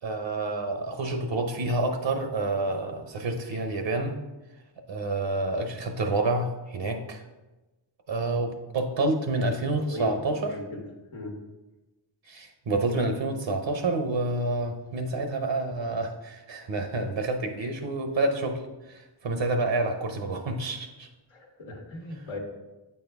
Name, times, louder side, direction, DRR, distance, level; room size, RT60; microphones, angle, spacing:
voice 1, 0.0-4.2 4.9-7.2 8.1-10.6 12.3-21.1, right 2 dB, 65° right, 5 dB, 0.8 m, -28 dB
voice 2, 9.7-10.2 10.5-10.8 11.1-11.4 21.3-22.4, left 2 dB, 80° left, -2 dB, 1.3 m, -38 dB
8.4 x 4.3 x 3.4 m, 1.1 s
wide cardioid pair, 100°, 48 cm